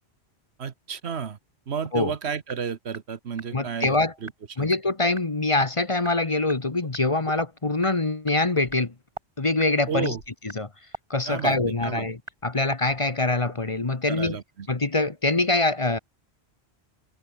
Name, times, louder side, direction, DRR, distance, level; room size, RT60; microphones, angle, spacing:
voice 1, 0.6-1.4 1.7-4.0 4.2-4.3 4.6-4.7 9.9-10.2 11.3-12.1 14.1-14.7, right 7 dB, 75° right, 1.4 m, -32 dB
sound 1, 2.5-2.6 2.9-3.0 3.4-3.5 3.8-3.9 4.3-4.4 4.7-4.8 5.1-5.2 5.6-5.7 6.0-6.1 6.5-6.6 6.9-7.0 7.4-7.5 7.8-7.9 8.3-8.4 8.7-8.8 9.1-9.2 9.6-12.8, right 2 dB, 25° right, 2.0 m, -38 dB
voice 2, 3.5-4.1 4.6-8.9 9.4-10.1 10.5-10.7 11.1-14.4 14.7-16.0, left 2 dB, 30° left, 1.3 m, -24 dB
sound 2, 6.8-6.9 7.3-7.4 8.5-9.2 10.0-10.5 12.0-12.1 12.4-12.5 12.7-13.1 13.5-13.8, left 2 dB, 70° left, 3.7 m, -47 dB
omnidirectional pair, 1.1 m